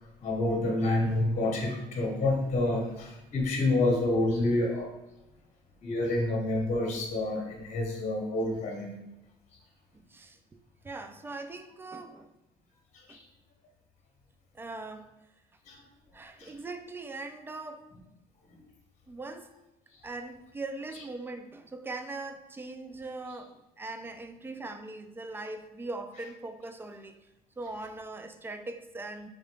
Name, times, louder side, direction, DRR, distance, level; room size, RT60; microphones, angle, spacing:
voice 1, 0.2-4.9 5.8-8.9 13.1-13.2 15.7-15.8 16.4-16.5, left 2 dB, 45° left, 1 dB, 0.9 m, -28 dB
voice 2, 9.9-10.6 10.8-12.3 13.1-13.2 14.5-15.1 16.1-17.9 19.1-19.5 20.0-27.2 27.6-29.3, right 2 dB, 15° right, 8 dB, 0.3 m, -41 dB
3.5 x 3.2 x 3.7 m, 0.94 s
cardioid pair, 110°, 17 cm